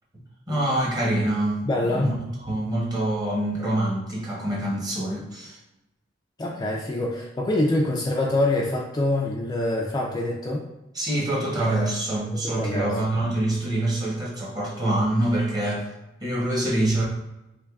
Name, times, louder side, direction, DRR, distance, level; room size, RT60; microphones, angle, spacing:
voice 1, 0.5-5.6 10.9-15.9 16.2-17.0, right 1 dB, 20° right, -4 dB, 0.9 m, -25 dB
voice 2, 1.6-2.1 6.4-10.6 12.3-13.0, left 1 dB, 20° left, -2 dB, 0.3 m, -25 dB
3.4 x 3.1 x 2.3 m, 0.97 s
head